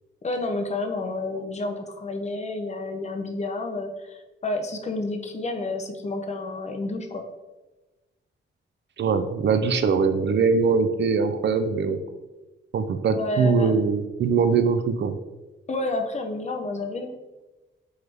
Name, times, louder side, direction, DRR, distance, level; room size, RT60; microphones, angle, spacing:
voice 1, 0.2-7.3 13.1-13.7 15.7-17.2, left 2 dB, 35° left, 5 dB, 0.7 m, -30 dB
voice 2, 9.0-12.0 12.7-15.1, right 5 dB, 60° right, 9 dB, 0.5 m, -22 dB
7.9 x 3.5 x 3.4 m, 1.1 s
wide cardioid pair, 175°, 21 cm